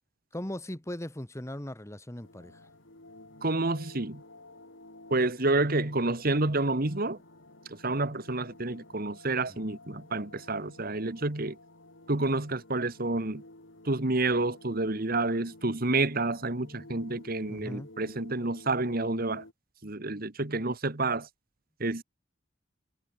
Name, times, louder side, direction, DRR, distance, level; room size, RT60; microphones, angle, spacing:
voice 1, 0.3-2.6 17.5-17.9, left 1 dB, 15° left, 1.3 m, -38 dB
sound 1, 2.2-19.5, left 2 dB, 65° left, 3.8 m, -52 dB
voice 2, 3.4-4.2 5.1-7.2 7.7-11.6 12.1-13.4 13.8-19.4 19.8-21.3 21.8-22.0, right 2 dB, 45° right, 1.7 m, -29 dB
head